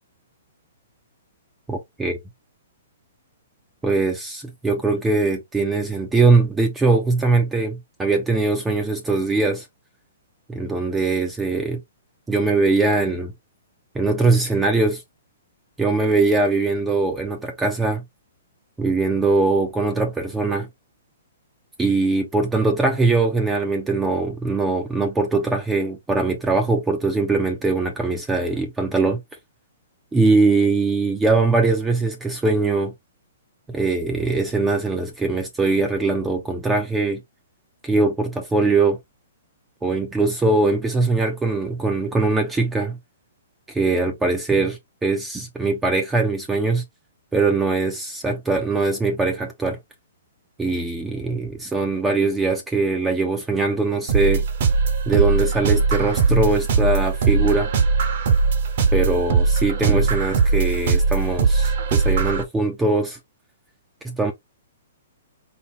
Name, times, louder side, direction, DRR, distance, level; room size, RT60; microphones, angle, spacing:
voice 1, 1.7-2.1 3.8-9.7 10.5-11.8 12.3-13.3 13.9-15.0 15.8-18.0 18.8-20.7 21.8-29.2 30.1-32.9 33.7-37.2 37.8-39.0 39.8-43.0 43.7-46.8 47.3-49.8 50.6-54.4 55.1-57.7 58.9-63.2 64.0-64.3, right 3 dB, 10° right, 0.7 m, -21 dB
sound 1, 54.1-62.4, right 4 dB, 55° right, 1.2 m, -20 dB
4.2 x 2.2 x 3.6 m
hypercardioid pair, 140°, 0 cm